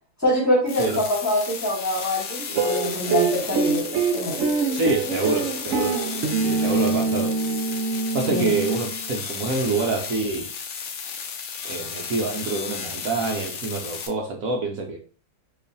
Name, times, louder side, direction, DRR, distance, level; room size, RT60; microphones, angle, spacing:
voice 1, 0.2-4.4 8.3-8.5, left 1 dB, 10° left, -4 dB, 1.1 m, -25 dB
sound 1, 0.7-14.1, left 6 dB, 75° left, 0.6 m, -34 dB
sound 2, 2.5-9.1, right 4 dB, 85° right, 0.6 m, -25 dB
voice 2, 4.7-6.0 6.5-7.4 8.1-10.5 11.6-15.0, right 3 dB, 65° right, 0 dB, 0.9 m, -26 dB
3.0 x 2.4 x 3.9 m, 0.40 s
omnidirectional pair, 1.9 m